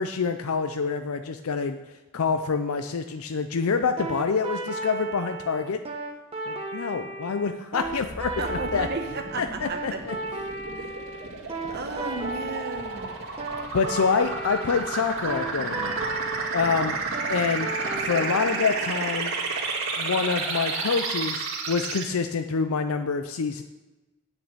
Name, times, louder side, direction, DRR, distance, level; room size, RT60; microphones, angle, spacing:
voice 1, 0.0-5.8 6.5-8.9 9.4-10.2 13.7-15.9 16.5-17.0 17.3-17.7 17.9-19.3 20.0-23.6, left 5 dB, 70° left, 8 dB, 0.5 m, -27 dB
sound 1, 4.0-18.8, right 3 dB, 25° right, 1.1 m, -35 dB
sound 2, 7.8-22.0, right 4 dB, 65° right, 2.3 m, -32 dB
voice 2, 8.4-10.0 10.7-11.0 11.7-13.2, right 3 dB, 45° right, 5 dB, 1.2 m, -34 dB
8.7 x 6.5 x 6.7 m, 1.1 s
head